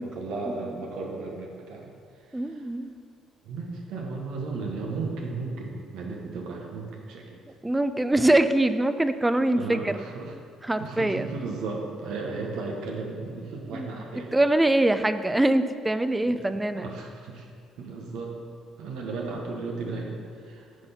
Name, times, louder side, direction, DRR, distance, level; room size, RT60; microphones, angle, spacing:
voice 1, 0.0-1.9 2.3-2.7 3.4-7.4 9.5-10.3 10.8-14.3 16.3-16.4 16.7-17.5 17.8-18.3 18.8-20.9, right 3 dB, 80° right, 0 dB, 1.0 m, -35 dB
voice 2, 2.3-3.0 7.6-10.0 10.6-11.3 13.7-13.9 14.3-16.9, right 1 dB, 15° right, 11 dB, 0.4 m, -23 dB
9.7 x 4.0 x 4.1 m, 2.2 s
supercardioid pair, 65°, 0 cm